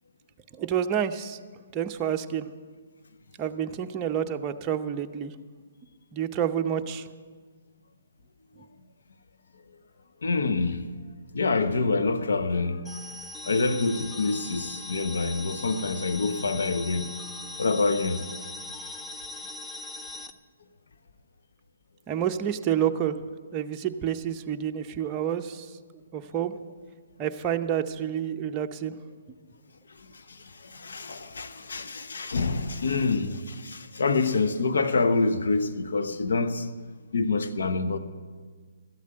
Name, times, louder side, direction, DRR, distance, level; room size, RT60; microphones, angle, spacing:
voice 1, 0.5-1.4 1.7-2.5 3.4-5.3 6.1-7.1 22.1-23.2 23.5-25.8 26.1-26.6 27.2-29.0, right 9 dB, 25° right, 0.7 m, -29 dB
voice 2, 10.2-10.8 11.3-12.8 13.4-17.1 17.6-18.2 30.3-30.4 30.6-36.7 37.1-38.0, left 3 dB, 75° left, 1.0 m, -26 dB
sound 1, 12.8-20.3, left 2 dB, 15° left, 0.6 m, -40 dB
13.0 x 8.3 x 9.0 m
hypercardioid pair, 145°, 0 cm